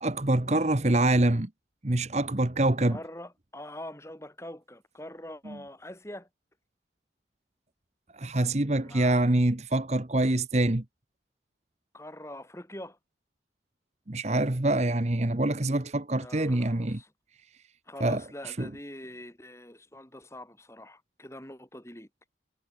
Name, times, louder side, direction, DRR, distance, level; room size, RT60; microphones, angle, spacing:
voice 1, 0.0-1.5 1.8-3.0 5.5-5.6 8.1-10.8 14.1-17.0 18.0-18.2 18.6-18.7, right 1 dB, 40° right, 1.2 m, -25 dB
voice 2, 2.9-6.3 8.8-9.2 11.9-13.0 16.1-17.1 17.9-22.1, left 1 dB, 15° left, 7.0 m, -44 dB
head